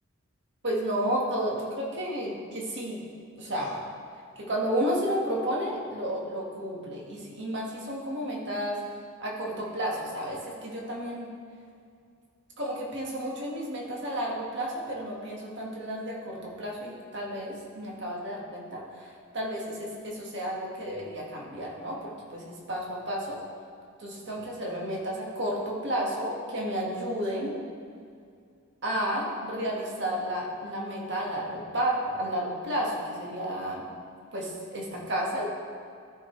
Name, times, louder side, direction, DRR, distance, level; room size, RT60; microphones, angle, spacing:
voice 1, 0.6-3.0 3.4-3.8 4.4-8.8 9.2-11.3 12.6-23.4 24.0-27.6 28.8-33.8 34.3-35.5, equal, 55° right, -3 dB, 1.5 m, -32 dB
13.5 x 4.8 x 3.2 m, 2.3 s
head